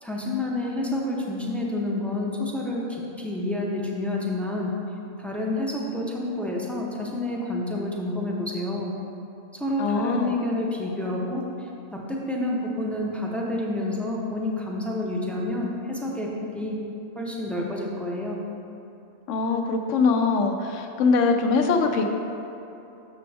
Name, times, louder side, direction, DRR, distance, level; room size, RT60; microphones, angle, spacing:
voice 1, 0.0-4.7 5.2-8.9 9.5-16.8 17.2-18.4, left 1 dB, ahead, -2 dB, 0.4 m, -29 dB
voice 2, 9.8-10.3 19.3-22.0, left 4 dB, 75° left, 5 dB, 1.0 m, -22 dB
6.9 x 6.7 x 3.4 m, 2.9 s
omnidirectional pair, 1.3 m